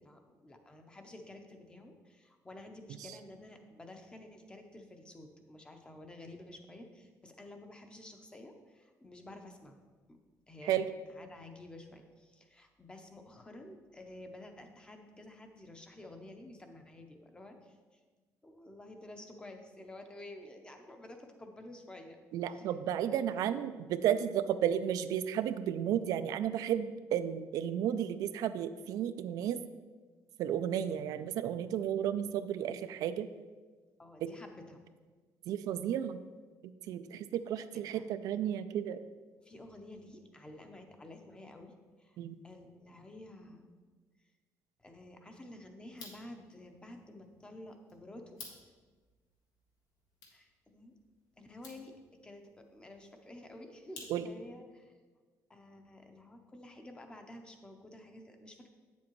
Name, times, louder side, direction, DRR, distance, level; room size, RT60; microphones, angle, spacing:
voice 1, 0.0-9.8 10.1-10.2 10.5-18.0 18.4-22.2 22.5-22.8 23.1-23.2 34.0-34.8 37.7-38.1 39.4-42.2 42.4-43.8 44.8-48.4 50.3-50.9 51.4-51.9 52.2-54.9 55.5-58.7, left 1 dB, 15° left, 5 dB, 0.7 m, -51 dB
voice 2, 22.3-29.6 30.4-33.3 34.2-34.3 35.5-36.2 36.9-39.0 42.2-42.4 54.1-54.2, right 10 dB, 75° right, 11 dB, 0.3 m, -33 dB
sound 1, 45.8-54.6, left 3 dB, 80° left, 1.6 m, -56 dB
8.4 x 7.2 x 3.1 m, 1.4 s
cardioid pair, 140°, 6 cm